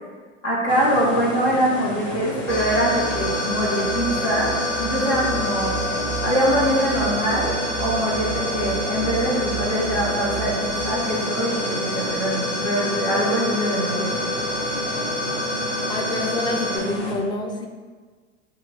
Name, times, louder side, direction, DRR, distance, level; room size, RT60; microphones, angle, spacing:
voice 1, 0.4-4.5 4.8-5.8 6.2-14.3, equal, 75° left, -6 dB, 1.4 m, -23 dB
sound 1, 0.7-17.1, right 1 dB, 50° left, 1.2 m, -31 dB
sound 2, 2.5-16.8, left 1 dB, 30° left, 1.4 m, -27 dB
voice 2, 15.9-17.7, left 2 dB, 15° left, 3 dB, 0.3 m, -27 dB
4.3 x 2.8 x 4.2 m, 1.5 s
figure-of-eight pair, 75°, 37 cm